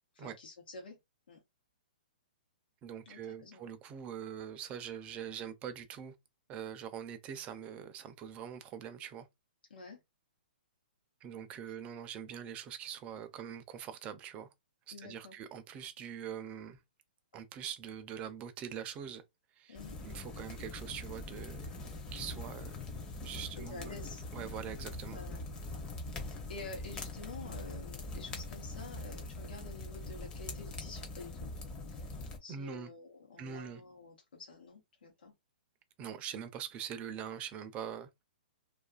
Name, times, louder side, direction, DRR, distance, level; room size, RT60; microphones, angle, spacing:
voice 1, 0.1-1.0 1.3-1.4 3.0-3.7 9.7-10.0 14.9-15.4 19.7-20.0 23.6-24.2 25.1-25.4 26.1-31.5 31.9-32.1 32.4-35.3, left 3 dB, 85° left, 0.9 m, -49 dB
voice 2, 2.8-6.1 6.5-9.3 11.2-14.5 14.9-16.8 17.3-19.2 19.6-19.8 20.0-21.7 22.1-22.9 23.2-23.9 24.3-25.2 32.5-32.9 33.4-33.8 36.0-38.1, right 8 dB, 25° right, 0.5 m, -43 dB
sound 1, 19.7-32.4, left 2 dB, 15° left, 0.6 m, -43 dB
2.6 x 2.4 x 2.3 m
hypercardioid pair, 140°, 5 cm